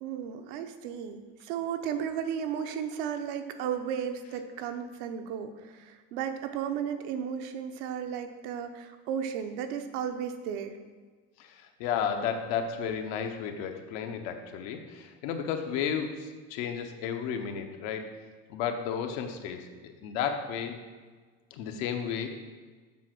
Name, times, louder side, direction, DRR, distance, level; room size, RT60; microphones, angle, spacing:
voice 1, 0.0-10.8, right 8 dB, 75° right, 7 dB, 0.8 m, -34 dB
voice 2, 11.4-18.1 18.5-20.8 21.5-22.3, left 7 dB, 75° left, 5 dB, 1.0 m, -33 dB
7.5 x 4.5 x 6.0 m, 1.4 s
cardioid pair, 170°, 29 cm